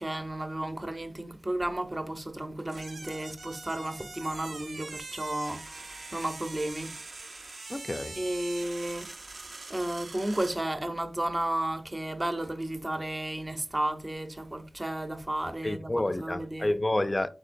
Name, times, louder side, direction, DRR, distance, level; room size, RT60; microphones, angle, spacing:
voice 1, 0.0-7.0 8.2-9.4 9.7-16.8, right 1 dB, 30° right, 0.6 m, -33 dB
sound 1, 2.7-10.6, right 3 dB, 80° right, 0.5 m, -43 dB
voice 2, 7.7-8.2 15.6-17.3, left 1 dB, 30° left, 0.4 m, -29 dB
5.1 x 3.8 x 2.5 m
wide cardioid pair, 55°, 0 cm